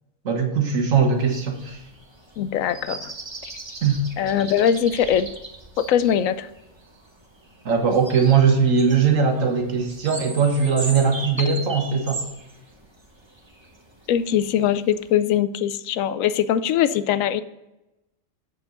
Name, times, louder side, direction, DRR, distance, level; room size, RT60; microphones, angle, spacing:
voice 1, 0.3-1.8 3.8-4.0 7.7-12.3, right 6 dB, 80° right, 3 dB, 1.7 m, -20 dB
sound 1, 1.2-15.1, right 2 dB, 20° right, 1.1 m, -39 dB
voice 2, 2.4-3.1 4.2-5.3 5.8-6.5 14.1-17.4, left 9 dB, 85° left, 14 dB, 1.0 m, -21 dB
8.0 x 6.8 x 3.9 m, 0.95 s
omnidirectional pair, 1.3 m